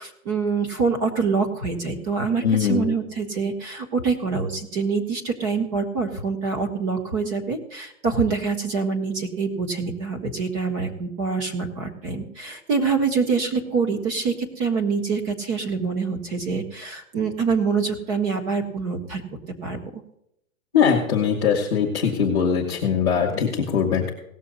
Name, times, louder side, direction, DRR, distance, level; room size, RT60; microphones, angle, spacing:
voice 1, 0.0-19.2 19.6-20.0, right 5 dB, 25° right, 4 dB, 1.6 m, -25 dB
voice 2, 2.4-3.0 20.7-24.1, left 7 dB, 5° right, -17 dB, 0.4 m, -21 dB
18.0 x 6.9 x 4.1 m, 0.79 s
hypercardioid pair, 170°, 42 cm